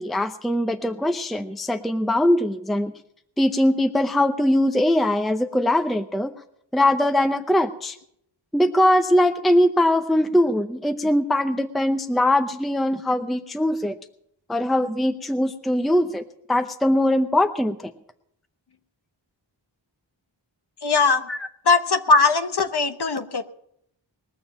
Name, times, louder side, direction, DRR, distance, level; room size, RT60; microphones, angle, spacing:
voice 1, 0.0-2.9 3.4-6.3 6.7-8.0 8.5-14.0 14.5-17.9 21.3-21.5, left 1 dB, ahead, 9 dB, 0.6 m, -21 dB
voice 2, 20.8-21.3 21.6-23.4, left 4 dB, 60° left, 10 dB, 1.1 m, -20 dB
21.0 x 7.1 x 7.1 m, 0.72 s
wide cardioid pair, 100°, 45 cm